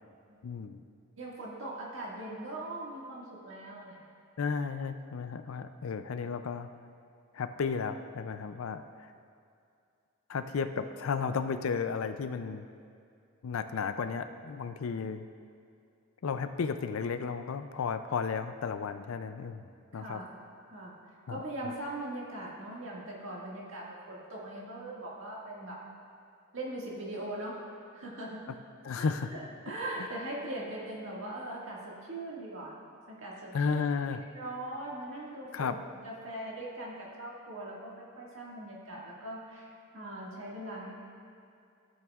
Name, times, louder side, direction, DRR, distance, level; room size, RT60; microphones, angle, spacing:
voice 1, 0.4-0.8 4.4-6.7 7.3-9.1 10.3-12.7 13.4-15.3 16.2-19.7 19.9-20.2 21.3-21.7 28.8-29.3 30.0-30.1 33.5-34.2 35.5-35.8, left 5 dB, 70° left, 9 dB, 0.4 m, -33 dB
voice 2, 1.2-4.0 19.9-20.4 20.7-20.9 21.3-25.8 26.5-27.6 27.9-28.5 29.0-32.7 33.2-33.8 34.4-35.8 36.0-39.7 39.9-40.9, right 1 dB, 60° right, -4 dB, 1.9 m, -40 dB
14.0 x 8.8 x 2.4 m, 2.4 s
head